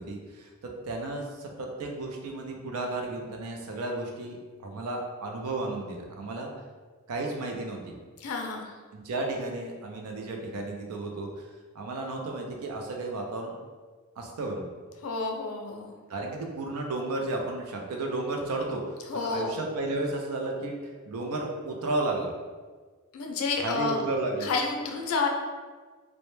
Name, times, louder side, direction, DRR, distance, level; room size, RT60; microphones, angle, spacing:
voice 1, 0.0-4.4 4.6-6.5 7.1-7.8 8.9-11.5 11.7-13.6 14.2-14.7 16.1-22.3 23.6-24.5, right 2 dB, 80° right, 1 dB, 0.4 m, -33 dB
voice 2, 8.2-8.7 15.0-16.0 19.1-19.6 23.1-24.0 24.4-25.3, left 4 dB, 70° left, 2 dB, 0.4 m, -30 dB
2.1 x 2.0 x 3.0 m, 1.4 s
head